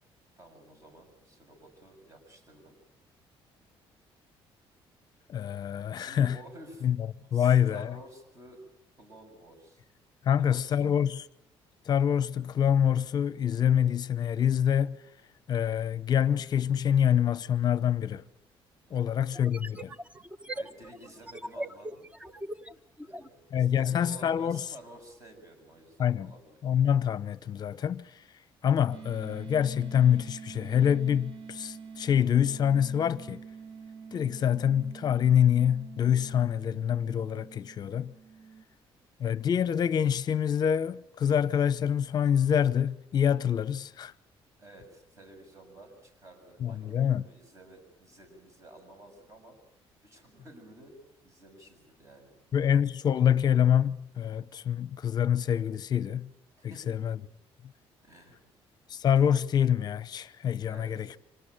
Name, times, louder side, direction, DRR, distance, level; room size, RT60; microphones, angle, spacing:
voice 1, 0.4-2.8 6.0-6.9 7.3-8.6 9.0-9.8 10.3-10.9 18.9-19.3 20.5-22.0 23.0-26.6 44.6-49.6 50.0-51.0 51.2-52.3 56.6-57.0 58.0-58.4 60.7-61.2, right 1 dB, 30° right, 7.3 m, -52 dB
voice 2, 5.3-6.4 6.8-7.9 10.2-11.2 11.9-15.0 15.5-18.2 18.9-19.9 23.5-24.6 26.0-26.3 26.6-28.1 28.6-33.4 34.1-38.1 39.2-44.1 46.6-47.2 52.5-56.3 56.6-57.2 58.9-61.1, left 9 dB, 45° left, 0.8 m, -26 dB
sound 1, 19.3-23.3, right 1 dB, 10° right, 0.9 m, -40 dB
sound 2, 28.9-38.6, right 5 dB, 60° right, 3.7 m, -46 dB
26.0 x 19.0 x 8.9 m
cardioid pair, 145°, 10 cm